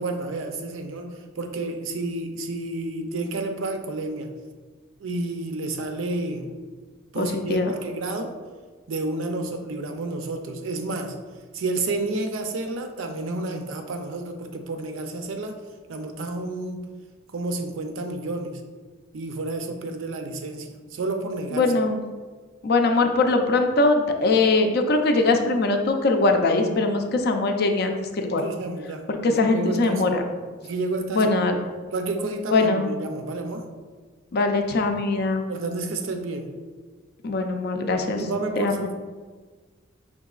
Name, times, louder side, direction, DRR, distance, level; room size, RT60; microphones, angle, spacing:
voice 1, 0.0-4.3 5.0-6.5 7.1-8.3 8.9-11.2 11.5-15.6 15.9-16.9 17.3-18.6 19.1-21.7 28.4-30.0 30.6-31.3 31.9-33.7 35.5-36.5 38.2-38.9, right 2 dB, 80° right, 5 dB, 0.5 m, -30 dB
voice 2, 7.2-7.7 21.5-22.0 22.6-28.4 29.1-30.2 31.1-31.7 32.5-32.9 34.3-35.5 37.2-38.2 38.6-38.9, left 3 dB, 55° left, 5 dB, 0.4 m, -22 dB
5.1 x 3.7 x 2.3 m, 1.4 s
head